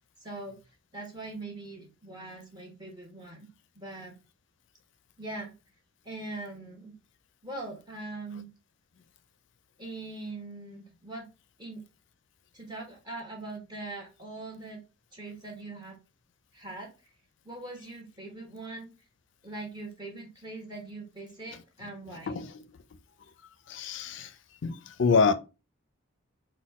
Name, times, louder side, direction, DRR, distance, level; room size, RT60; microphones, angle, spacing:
voice 1, 0.2-0.6 0.9-3.5 3.7-4.2 5.2-5.5 6.0-6.9 7.4-8.5 9.8-11.3 11.6-11.8 12.5-14.8 15.1-16.0 16.5-16.9 17.4-18.9 19.4-22.4, right 2 dB, 20° right, 1.1 m, -41 dB
voice 2, 22.3-22.6 23.7-24.3 24.6-25.3, left 5 dB, 60° left, 0.4 m, -26 dB
4.2 x 2.2 x 4.1 m
head